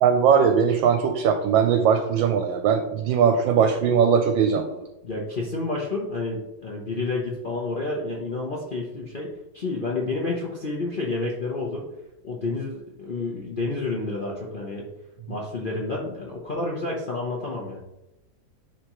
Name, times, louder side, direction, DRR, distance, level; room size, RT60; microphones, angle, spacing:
voice 1, 0.0-4.8, right 7 dB, 75° right, 6 dB, 1.3 m, -20 dB
voice 2, 5.0-9.3 9.5-11.8 12.2-14.9 15.3-17.8, left 3 dB, 85° left, -3 dB, 0.4 m, -29 dB
10.0 x 3.4 x 3.0 m, 0.94 s
omnidirectional pair, 2.2 m